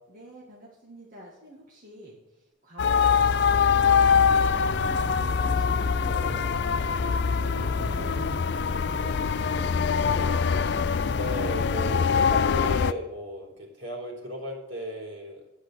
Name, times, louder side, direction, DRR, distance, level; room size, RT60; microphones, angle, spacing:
voice 1, 0.1-3.0 3.4-5.3 5.5-9.8, right 1 dB, 40° right, -4 dB, 2.1 m, -48 dB
sound 1, 2.8-12.9, left 6 dB, 55° left, 0.4 m, -23 dB
voice 2, 2.8-3.2 6.1-6.3 11.1-15.5, equal, 70° right, -1 dB, 3.7 m, -35 dB
Livestock farm animals working animals, 3.3-12.0, right 1 dB, 10° right, 4.6 m, -40 dB
10.0 x 8.2 x 6.6 m, 1.0 s
head